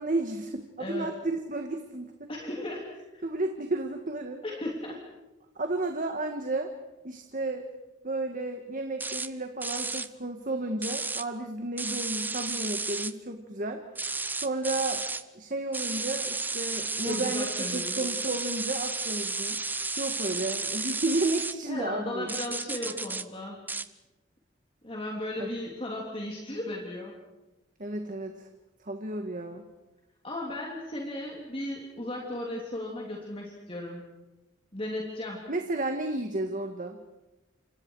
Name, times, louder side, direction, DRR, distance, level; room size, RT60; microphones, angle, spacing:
voice 1, 0.0-2.3 3.2-4.4 5.5-6.7 7.0-7.7 8.0-13.8 14.3-15.0 15.3-17.5 17.7-19.6 20.0-22.3 25.4-25.5 27.8-28.5 28.8-29.6 35.5-37.0, right 2 dB, 45° right, 4 dB, 1.7 m, -32 dB
voice 2, 0.8-1.1 2.3-3.2 4.4-5.0 17.0-18.0 21.7-23.6 24.8-27.1 30.2-34.0 34.7-35.5, left 1 dB, 30° left, -2 dB, 3.3 m, -36 dB
sound 1, 9.0-9.3 9.6-10.1 10.8-11.2 11.8-13.1 13.9-15.2 15.7-21.5 22.3-23.2 23.7-23.9, right 3 dB, 10° right, 0.7 m, -32 dB
29.0 x 26.5 x 4.8 m, 1.0 s
head